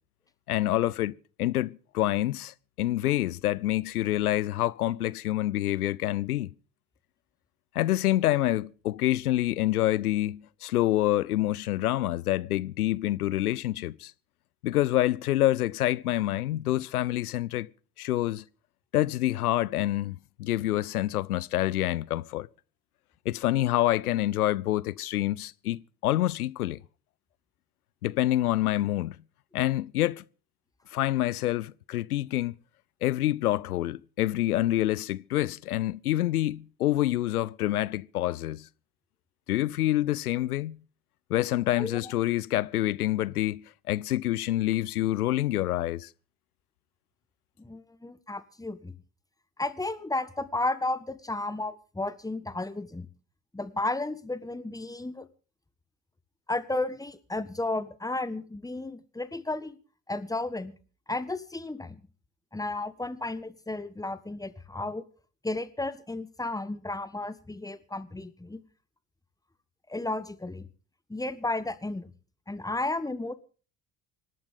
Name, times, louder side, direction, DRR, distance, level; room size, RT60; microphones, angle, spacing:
voice 1, 0.5-6.5 7.7-14.1 14.6-17.7 18.0-18.4 18.9-22.5 23.3-26.8 28.0-29.2 29.5-30.2 30.9-32.5 33.0-38.7 39.5-40.8 41.3-46.1, left 15 dB, 75° left, 0.6 m, -27 dB
voice 2, 41.8-42.1 47.6-48.9 49.6-53.1 53.5-55.3 56.5-59.8 60.1-60.7 61.1-62.0 62.5-65.0 65.4-68.6 69.9-70.7 71.1-72.1 72.5-73.3, left 2 dB, 10° left, 1.6 m, -33 dB
25.5 x 11.5 x 3.8 m
figure-of-eight pair, 60°, 45 cm